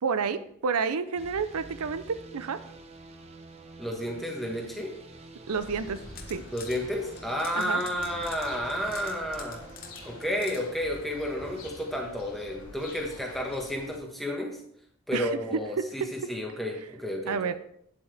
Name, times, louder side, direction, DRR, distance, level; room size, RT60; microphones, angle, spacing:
voice 1, 0.0-2.6 5.5-6.0 6.3-6.4 7.6-7.8 15.1-15.3 15.8-16.1 17.3-17.5, right 5 dB, 85° right, 12 dB, 0.5 m, -29 dB
sound 1, 1.1-13.0, right 2 dB, 30° right, 0.8 m, -49 dB
voice 2, 3.8-4.9 6.5-9.6 10.0-14.6 15.1-17.5, equal, ahead, 0 dB, 1.3 m, -31 dB
sound 2, 5.5-14.0, left 2 dB, 80° left, 2.6 m, -48 dB
sound 3, 5.9-6.8 7.2-10.6, left 7 dB, 40° left, 1.0 m, -46 dB
9.0 x 7.6 x 3.4 m, 0.71 s
head